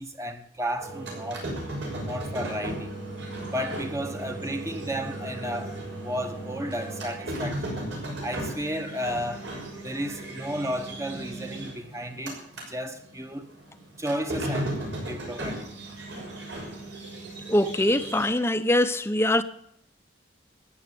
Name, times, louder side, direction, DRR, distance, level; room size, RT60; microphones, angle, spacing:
voice 1, 0.0-1.5 2.1-3.0 3.4-7.8 8.2-12.4 12.7-13.5 14.0-15.7, equal, 15° right, 1.0 m, -33 dB
sound 1, 0.8-12.7 13.0-18.3, right 1 dB, 80° right, 6.4 m, -36 dB
voice 2, 17.5-19.4, left 1 dB, 15° left, 0.6 m, -23 dB
14.5 x 10.0 x 8.3 m
head